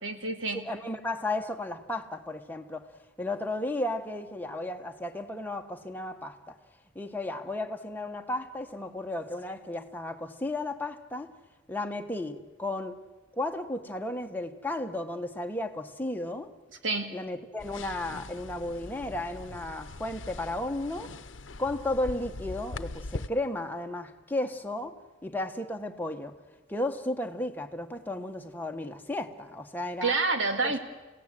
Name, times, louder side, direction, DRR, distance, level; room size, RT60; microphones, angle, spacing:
voice 1, 0.0-0.6 16.8-17.1 30.0-30.8, right 3 dB, 85° right, 2.3 m, -28 dB
voice 2, 0.5-2.9 3.2-6.5 6.9-11.3 11.7-13.0 13.3-16.5 17.1-21.1 21.6-25.0 25.2-26.3 26.7-30.1 30.6-30.8, left 1 dB, 10° left, 1.5 m, -34 dB
sound 1, 17.6-23.3, left 2 dB, 80° left, 0.9 m, -41 dB
30.0 x 17.0 x 8.0 m
head